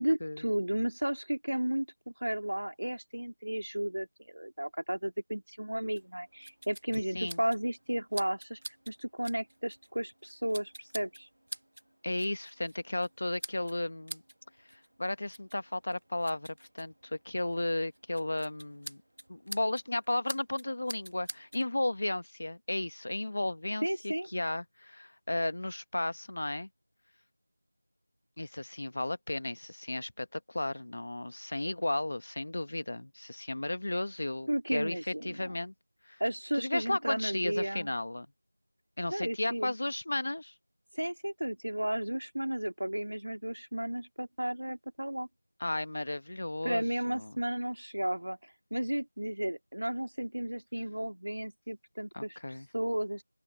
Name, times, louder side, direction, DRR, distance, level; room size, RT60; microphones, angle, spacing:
voice 1, 0.0-8.6 8.9-11.3 23.8-24.3 34.5-35.5 36.2-37.9 39.1-39.7 40.9-45.3 46.6-52.4 52.7-53.2, right 1 dB, 85° right, 2.5 m, -33 dB
sound 1, 6.0-21.7, right 1 dB, 50° right, 1.3 m, -48 dB
voice 2, 12.0-14.2 14.7-19.0 19.3-26.7 28.4-35.7 36.0-36.2 36.5-38.3 39.0-40.5 45.6-47.3 52.1-52.7, left 1 dB, 30° left, 1.2 m, -34 dB
open air
figure-of-eight pair, 180°, 0 cm